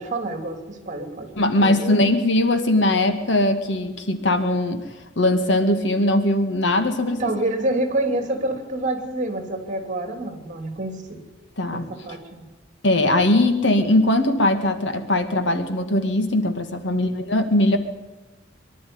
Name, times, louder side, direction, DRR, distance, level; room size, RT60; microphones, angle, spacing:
voice 1, 0.0-1.3 1.6-2.1 7.2-11.2 11.7-12.5 16.9-17.1, right 2 dB, 40° right, 6 dB, 3.1 m, -27 dB
voice 2, 1.4-4.9 5.2-7.3 11.6-11.9 12.8-17.8, left 1 dB, 65° left, 8 dB, 2.1 m, -20 dB
23.5 x 12.0 x 9.6 m, 1.1 s
head